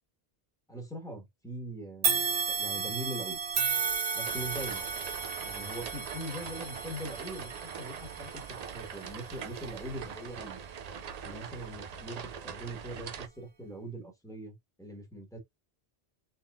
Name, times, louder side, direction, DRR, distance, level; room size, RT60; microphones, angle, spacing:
voice 1, 0.7-2.2 2.6-3.4 4.1-4.9 5.4-7.5 7.8-10.6 11.2-15.4, right 1 dB, 5° left, 1.6 m, -41 dB
sound 1, 2.0-11.3 11.9-12.0 13.0-13.1, right 6 dB, 85° right, 1.2 m, -34 dB
sound 2, 4.2-13.3, right 7 dB, 55° right, 0.4 m, -43 dB
4.0 x 3.7 x 2.5 m
omnidirectional pair, 1.1 m